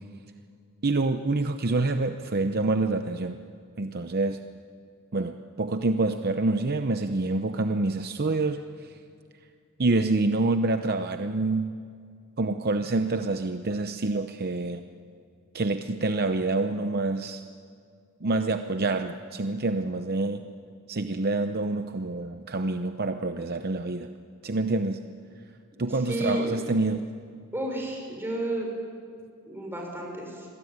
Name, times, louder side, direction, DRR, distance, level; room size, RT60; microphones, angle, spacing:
voice 1, 0.8-3.4 3.8-4.4 5.1-9.0 9.8-11.8 12.4-14.8 15.5-17.4 18.2-20.4 20.9-24.1 24.4-25.0 25.8-27.1, right 2 dB, 45° right, 8 dB, 0.8 m, -27 dB
voice 2, 26.0-26.5 27.5-28.7 29.5-30.5, right 1 dB, 10° right, 0 dB, 6.2 m, -31 dB
27.0 x 21.0 x 9.6 m, 2.3 s
head